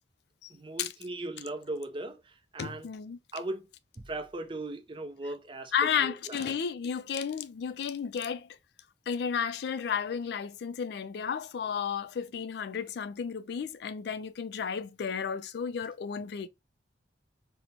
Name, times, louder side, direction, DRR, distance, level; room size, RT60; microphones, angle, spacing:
voice 1, 0.5-2.9 3.3-3.6 4.0-6.4, right 2 dB, 25° right, 0.4 m, -38 dB
voice 2, 2.6-3.2 5.7-8.5 9.1-16.5, left 7 dB, 60° left, 0.3 m, -33 dB
4.3 x 2.1 x 2.7 m
head